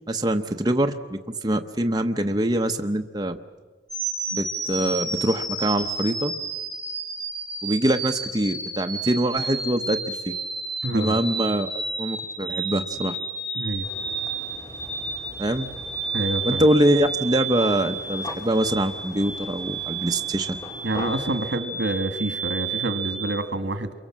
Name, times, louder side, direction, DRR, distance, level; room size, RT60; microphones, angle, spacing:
voice 1, 0.0-3.4 4.3-6.3 7.6-10.3 10.9-11.7 12.0-13.2 15.4-15.7 16.4-20.6, right 1 dB, 20° right, 4 dB, 0.9 m, -24 dB
sound 1, 3.9-23.3, right 3 dB, ahead, 7.8 m, -31 dB
voice 2, 10.8-11.2 13.6-13.9 16.1-16.6 20.8-23.9, right 2 dB, 75° right, 9 dB, 1.8 m, -27 dB
sound 2, 13.8-21.5, left 1 dB, 25° left, 2.9 m, -41 dB
28.0 x 23.5 x 7.5 m, 1.4 s
head